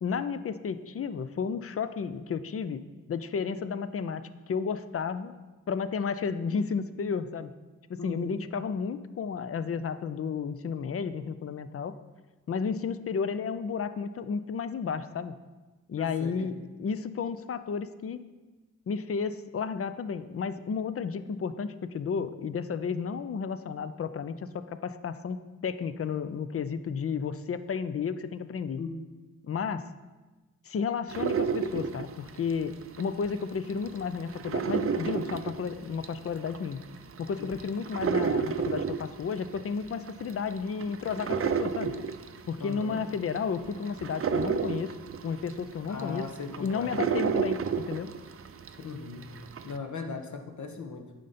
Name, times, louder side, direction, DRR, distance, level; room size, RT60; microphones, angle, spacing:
voice 1, 0.0-2.8 3.1-5.3 5.7-7.5 7.9-11.9 12.5-15.4 15.9-18.2 18.9-28.8 29.4-29.9 30.7-36.9 37.2-41.9 42.5-44.9 45.2-46.3 46.6-48.1, left 6 dB, 45° left, 12 dB, 0.5 m, -32 dB
voice 2, 8.0-8.5 16.0-16.5 28.8-28.9 37.4-37.5 42.6-43.0 45.9-47.0 48.8-49.3 49.6-51.1, left 4 dB, 60° left, 4 dB, 1.1 m, -38 dB
sound 1, 31.1-33.3 33.7-48.8 49.2-49.8, right 6 dB, 45° right, 0.5 m, -31 dB
9.2 x 5.3 x 4.2 m, 1.2 s
cardioid pair, 70°, 33 cm